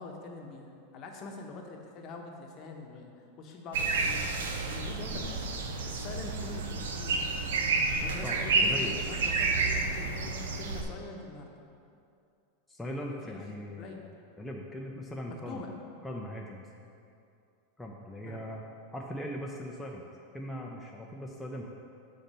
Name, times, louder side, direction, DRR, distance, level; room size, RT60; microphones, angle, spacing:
voice 1, 0.0-3.1 3.4-5.5 5.8-7.4 7.9-11.6 13.1-13.4 13.8-14.0 15.3-15.8 18.2-18.5, left 3 dB, 40° left, 2 dB, 0.9 m, -44 dB
sound 1, 3.7-10.8, right 3 dB, 85° right, 0.7 m, -30 dB
voice 2, 8.2-9.0 12.7-14.0 14.4-15.6 16.0-16.7 17.8-18.6 18.9-20.1 20.3-21.7, equal, 5° left, -1 dB, 0.5 m, -39 dB
7.1 x 3.9 x 5.4 m, 2.5 s
supercardioid pair, 130°, 0 cm